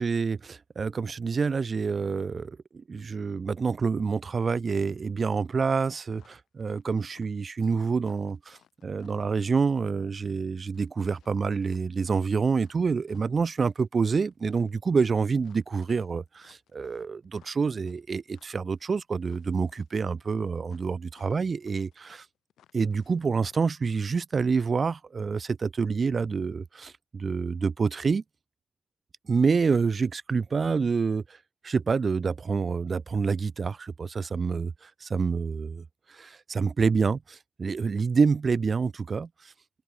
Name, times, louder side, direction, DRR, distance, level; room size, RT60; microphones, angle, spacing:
voice 1, 0.0-8.4 8.8-16.2 16.7-22.3 22.7-28.2 29.3-31.2 31.6-35.8 36.1-39.3, right 5 dB, 50° right, 0.3 m, -27 dB
sound 1, 6.1-6.8 7.1-9.8 10.6-12.8 13.1-23.2 23.5-23.7, left 10 dB, 85° left, 3.4 m, -63 dB
cardioid pair, 55°, 0 cm